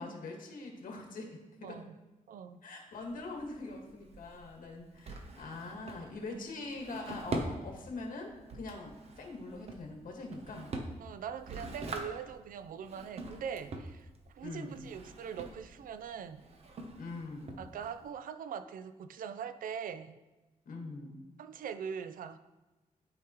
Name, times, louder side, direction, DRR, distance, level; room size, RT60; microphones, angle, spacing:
voice 1, 0.0-1.8 2.6-10.7 14.4-14.8 16.9-17.6 20.6-21.2, left 3 dB, 80° left, 1 dB, 1.7 m, -43 dB
voice 2, 1.6-1.9 2.3-2.6 6.3-6.4 6.9-7.2 11.0-16.4 17.6-20.2 21.4-22.4, right 7 dB, 85° right, 11 dB, 0.5 m, -42 dB
Drawer open or close, 2.9-18.1, right 2 dB, 50° right, 0.8 m, -44 dB
12.0 x 5.0 x 3.0 m, 1.1 s
wide cardioid pair, 155°, 14 cm